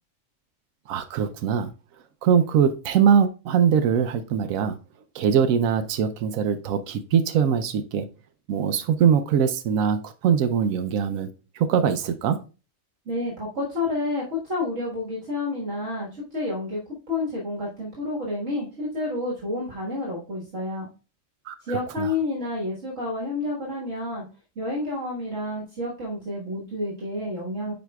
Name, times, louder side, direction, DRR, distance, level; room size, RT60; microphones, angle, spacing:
voice 1, 0.9-1.7 2.2-4.8 5.1-8.1 8.5-11.3 11.6-12.4 21.5-21.6 22.0-22.1, right 7 dB, 90° right, 1.0 m, -22 dB
voice 2, 13.1-20.9 21.6-24.2 24.6-27.7, left 2 dB, 65° right, 2.0 m, -29 dB
9.3 x 4.9 x 2.3 m
omnidirectional pair, 1.4 m